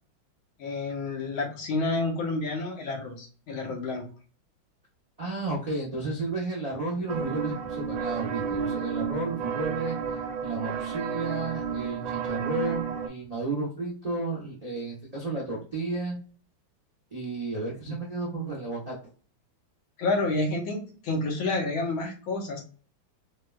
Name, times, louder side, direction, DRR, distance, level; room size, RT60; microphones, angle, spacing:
voice 1, 0.6-4.0 20.0-22.6, left 2 dB, 85° left, 1 dB, 1.8 m, -29 dB
voice 2, 5.2-9.9 10.4-16.2 17.1-18.9, right 3 dB, 50° right, -5 dB, 0.4 m, -32 dB
sound 1, 7.1-13.1, right 6 dB, 75° right, 1.3 m, -31 dB
4.7 x 2.1 x 2.3 m, 0.39 s
omnidirectional pair, 2.2 m